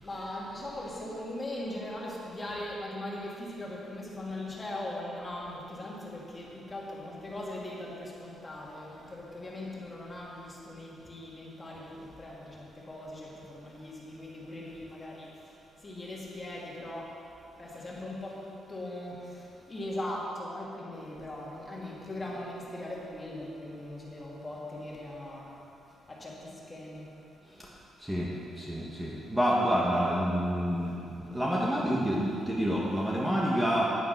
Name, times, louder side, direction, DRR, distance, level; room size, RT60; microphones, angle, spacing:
voice 1, 0.0-15.5 15.8-17.2 17.6-25.6 26.1-27.1, left 1 dB, 20° left, -4 dB, 2.5 m, -40 dB
voice 2, 28.6-30.9 31.3-33.8, equal, 10° right, -5 dB, 1.4 m, -28 dB
9.6 x 9.2 x 6.0 m, 2.7 s
cardioid pair, 105°, 0 cm